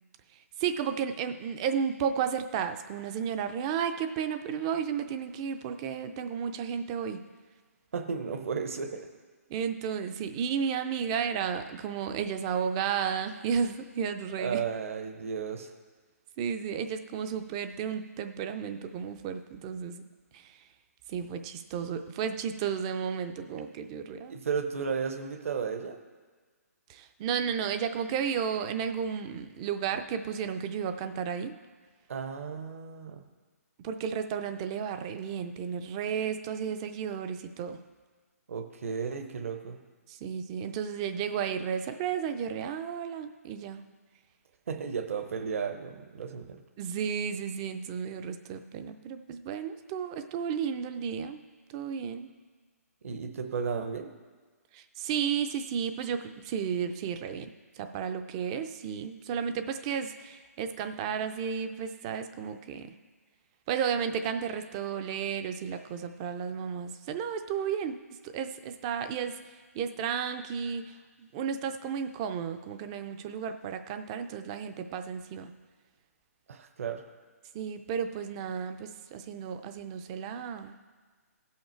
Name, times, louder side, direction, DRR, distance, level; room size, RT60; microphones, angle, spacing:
voice 1, 0.6-7.2 9.5-14.6 16.4-20.0 20.3-20.6 21.1-24.3 26.9-31.6 33.8-37.8 40.1-43.8 46.8-51.4 51.7-52.3 54.7-57.5 57.8-62.9 63.7-68.0 68.2-69.4 69.7-75.5 77.5-80.8, right 7 dB, 20° right, 9 dB, 0.4 m, -33 dB
voice 2, 7.9-9.1 14.4-15.7 24.3-26.0 32.1-33.2 38.5-39.8 44.7-46.6 53.0-54.1 76.5-77.0, right 6 dB, 55° right, 6 dB, 0.9 m, -34 dB
15.5 x 5.7 x 4.5 m, 1.5 s
hypercardioid pair, 155°, 9 cm